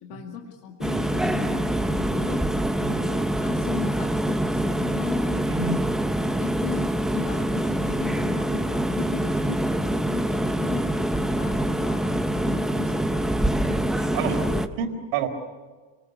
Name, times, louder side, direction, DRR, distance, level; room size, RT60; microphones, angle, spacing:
voice 1, 0.0-2.5 2.8-5.9 6.2-13.3 14.2-14.6, left 8 dB, 70° left, 2 dB, 2.3 m, -37 dB
sound 1, 0.8-14.7, right 1 dB, ahead, 0.7 m, -25 dB
voice 2, 5.4-5.8 13.7-14.4 14.8-15.3, right 6 dB, 80° right, 5 dB, 4.2 m, -29 dB
28.5 x 19.5 x 8.2 m, 1.4 s
cardioid pair, 165°, 40 cm